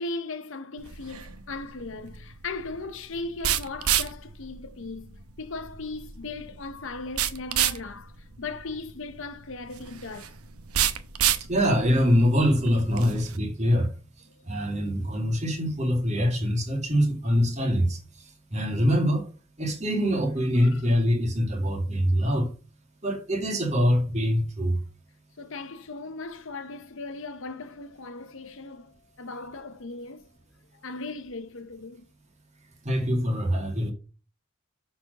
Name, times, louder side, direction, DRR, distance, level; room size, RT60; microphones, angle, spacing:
voice 1, 0.0-10.4 20.6-20.9 25.4-30.3 30.8-32.0, left 3 dB, 60° left, 0.8 m, -38 dB
sound 1, 0.8-13.4, right 10 dB, 85° right, 0.8 m, -31 dB
voice 2, 11.4-13.9 14.4-19.3 19.6-22.5 23.0-24.8 32.8-33.9, equal, 30° right, 1.9 m, -24 dB
7.2 x 4.3 x 6.3 m
head